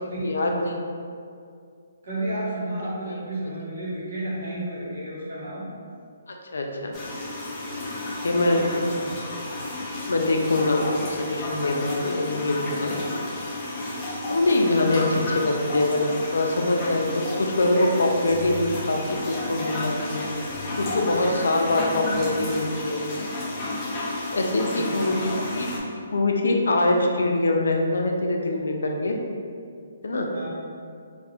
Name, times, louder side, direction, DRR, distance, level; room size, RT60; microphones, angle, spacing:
voice 1, 0.2-0.7 3.4-3.5 6.5-6.9 8.2-8.6 10.1-12.9 14.3-16.0 16.3-20.2 20.7-23.0 24.3-25.7 26.1-29.2 30.0-30.3, left 2 dB, 90° left, 2 dB, 0.4 m, -24 dB
voice 2, 2.0-5.7 8.3-9.2 24.6-25.3 30.3-30.4, right 1 dB, 50° right, -8 dB, 1.2 m, -32 dB
sound 1, 6.9-25.8, left 2 dB, 15° left, 0.4 m, -32 dB
2.6 x 2.4 x 3.4 m, 2.3 s
hypercardioid pair, 175°, 0 cm